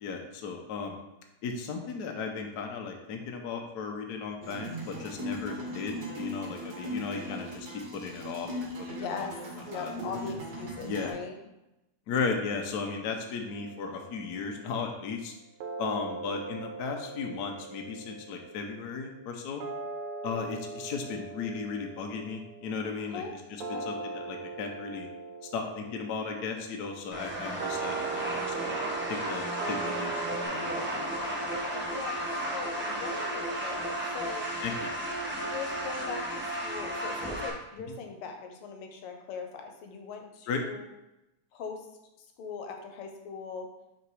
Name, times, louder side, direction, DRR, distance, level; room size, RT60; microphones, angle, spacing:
voice 1, 0.0-1.0 1.4-9.3 9.7-9.9 10.8-11.1 12.1-15.3 15.8-19.6 20.2-23.2 23.9-25.1 25.5-28.8 29.1-30.1 30.4-31.1 34.6-34.9 40.5-40.6, left 5 dB, 60° left, 3 dB, 1.1 m, -35 dB
sound 1, 4.4-11.1, equal, 50° right, 1.6 m, -38 dB
voice 2, 8.9-9.4 9.7-11.4 16.2-16.3 23.1-23.3 23.6-23.9 31.7-34.5 35.3-40.9 41.5-41.9 42.4-43.7, left 5 dB, 80° left, 4 dB, 1.7 m, -40 dB
sound 2, 13.5-14.8 15.6-30.5, right 4 dB, 80° right, 1.5 m, -41 dB
sound 3, 27.1-37.5, right 1 dB, 5° right, 1.0 m, -33 dB
5.8 x 4.0 x 4.7 m, 0.93 s
omnidirectional pair, 2.4 m